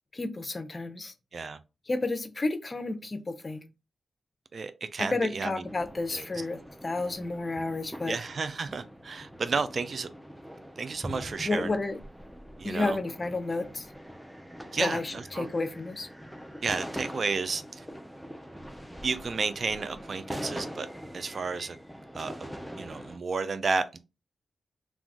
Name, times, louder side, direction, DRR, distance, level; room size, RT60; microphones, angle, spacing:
voice 1, 0.1-1.1 1.9-3.7 5.1-8.2 11.5-12.0 12.6-13.9 14.8-16.1, left 2 dB, 45° left, 0.5 m, -31 dB
voice 2, 4.5-5.7 6.1-6.3 8.1-10.1 10.8-11.8 12.6-13.0 14.7-15.5 16.6-17.9 19.0-20.9 21.1-21.8 22.1-22.5 22.8-24.0, right 4 dB, 60° right, 0.3 m, -32 dB
sound 1, 5.7-23.2, equal, 5° right, 0.5 m, -43 dB
2.3 x 2.3 x 3.6 m
supercardioid pair, 40°, 0 cm